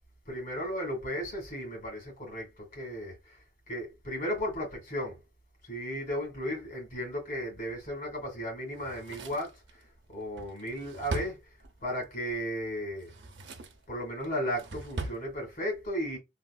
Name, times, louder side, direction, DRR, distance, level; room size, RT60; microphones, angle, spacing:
voice 1, 0.3-3.2 3.7-5.2 5.7-9.5 10.1-11.4 11.8-13.1 13.9-16.2, equal, 50° left, 2.0 m, -35 dB
Drawer open or close, 8.7-12.0 12.9-13.8 14.2-15.2 15.5-15.6, right 2 dB, 80° right, 0.7 m, -40 dB
3.4 x 2.5 x 2.2 m
head